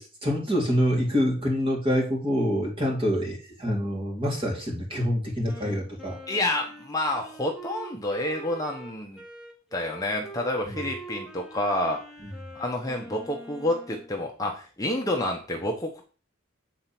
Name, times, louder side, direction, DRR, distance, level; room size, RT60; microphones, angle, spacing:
voice 1, 0.0-6.2 10.7-10.8, equal, 25° right, -2 dB, 2.7 m, -26 dB
Wind instrument woodwind instrument, 5.4-14.1, right 2 dB, 5° right, 1.7 m, -44 dB
voice 2, 6.3-9.2 9.7-12.0 12.5-16.0, left 1 dB, 15° left, 1 dB, 0.9 m, -29 dB
8.5 x 4.3 x 5.9 m, 0.37 s
head